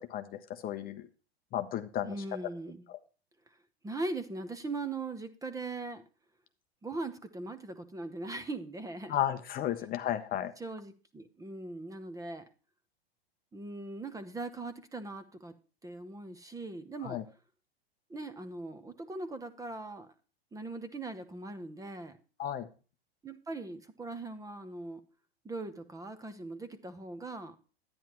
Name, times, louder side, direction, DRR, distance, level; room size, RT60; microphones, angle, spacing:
voice 1, 0.1-1.1 1.5-2.1 2.9-3.0 9.1-10.5 17.0-17.2 22.4-22.7, left 11 dB, 30° left, 8 dB, 0.7 m, -33 dB
voice 2, 2.0-2.9 3.8-6.0 6.8-9.2 10.6-12.4 13.5-15.6 15.8-17.2 18.1-20.1 20.5-22.2 23.2-25.0 25.4-27.6, right 2 dB, 10° right, 11 dB, 0.8 m, -40 dB
10.0 x 9.6 x 3.0 m, 0.36 s
hypercardioid pair, 120°, 32 cm